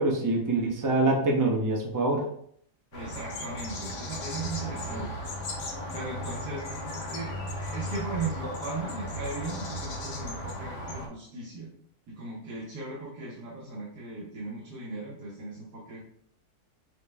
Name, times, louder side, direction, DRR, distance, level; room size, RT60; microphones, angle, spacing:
voice 1, 0.0-2.2, right 2 dB, 30° right, -1 dB, 0.3 m, -25 dB
sound 1, 2.9-11.1, left 1 dB, 90° left, 1.5 m, -36 dB
voice 2, 2.9-5.2 5.9-6.7 7.1-7.4 7.7-11.7 12.1-16.0, right 3 dB, 85° right, -6 dB, 1.6 m, -37 dB
6.3 x 2.2 x 3.4 m, 0.66 s
omnidirectional pair, 1.7 m